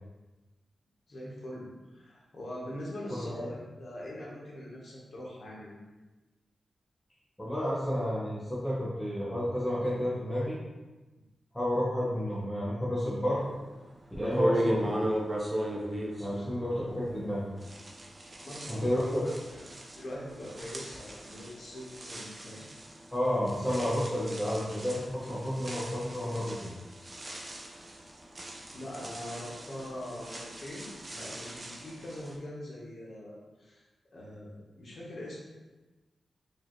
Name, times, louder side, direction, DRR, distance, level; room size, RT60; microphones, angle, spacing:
voice 1, 1.1-5.8 15.9-16.9 18.4-19.6 19.9-22.7 28.7-33.8 34.1-35.4, left 1 dB, 55° left, -5 dB, 1.0 m, -43 dB
voice 2, 3.1-3.4 7.4-10.6 11.5-13.6 14.2-15.0 16.2-17.5 18.7-19.2 23.1-26.7, equal, 10° left, -8 dB, 0.8 m, -31 dB
sound 1, 13.6-13.7 14.1-17.3 17.6-32.3, right 1 dB, 30° right, 0.5 m, -37 dB
4.8 x 2.4 x 3.0 m, 1.2 s
wide cardioid pair, 145°, 0 cm